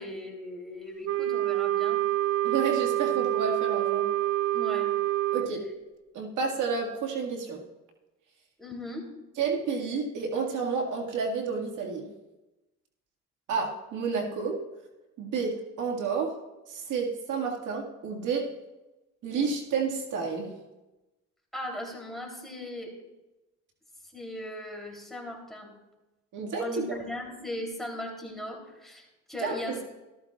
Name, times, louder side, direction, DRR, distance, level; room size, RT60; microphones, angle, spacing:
voice 1, 0.0-2.0 4.5-4.9 8.6-9.0 21.5-22.9 24.1-25.7 26.6-30.0, left 1 dB, ahead, 0 dB, 3.2 m, -38 dB
Wind instrument woodwind instrument, 1.0-5.5, right 14 dB, 55° right, 0.4 m, -27 dB
voice 2, 2.4-4.1 5.3-5.6 6.1-7.6 9.4-12.1 13.5-14.6 15.2-16.3 16.7-18.5 19.2-20.5 26.3-26.8 29.4-29.9, right 5 dB, 80° right, 0 dB, 2.0 m, -30 dB
14.0 x 13.5 x 2.4 m, 1.0 s
cardioid pair, 90°, 30 cm